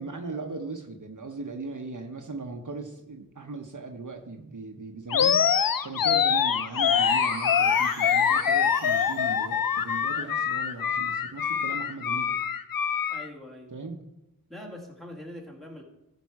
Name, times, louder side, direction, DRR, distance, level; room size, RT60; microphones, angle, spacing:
voice 1, 0.0-5.4 5.8-12.3 13.7-14.0, right 3 dB, 55° right, 4 dB, 0.9 m, -38 dB
Animal, 5.1-13.3, left 7 dB, 65° left, 0.5 m, -24 dB
sound 1, 6.6-9.4, equal, 25° left, 2.8 m, -37 dB
voice 2, 13.1-13.7 14.5-15.8, left 1 dB, ahead, -1 dB, 2.0 m, -43 dB
14.0 x 5.2 x 4.7 m, 0.91 s
wide cardioid pair, 60°, 36 cm